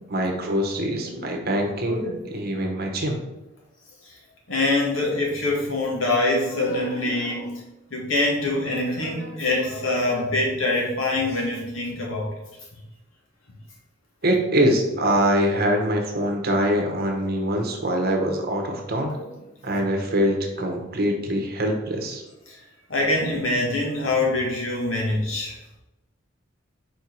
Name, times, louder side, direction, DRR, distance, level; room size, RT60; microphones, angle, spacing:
voice 1, 0.1-3.2 14.2-19.2 19.6-22.2, equal, 50° right, 3 dB, 1.1 m, -24 dB
voice 2, 4.5-7.6 7.9-12.3 19.1-19.3 19.7-19.8 22.5-22.6 22.9-25.6, left 2 dB, 85° left, -3 dB, 1.9 m, -24 dB
4.8 x 4.4 x 4.6 m, 0.97 s
head